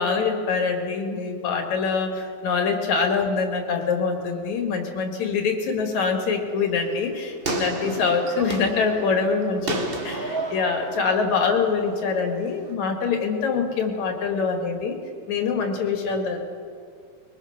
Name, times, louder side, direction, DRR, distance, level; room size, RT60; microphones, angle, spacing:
voice 1, 0.0-15.0 15.3-16.4, left 5 dB, 75° left, 3 dB, 3.5 m, -24 dB
sound 1, 6.6-12.7, right 3 dB, 40° right, 0.7 m, -33 dB
22.0 x 21.5 x 6.0 m, 2.2 s
omnidirectional pair, 3.3 m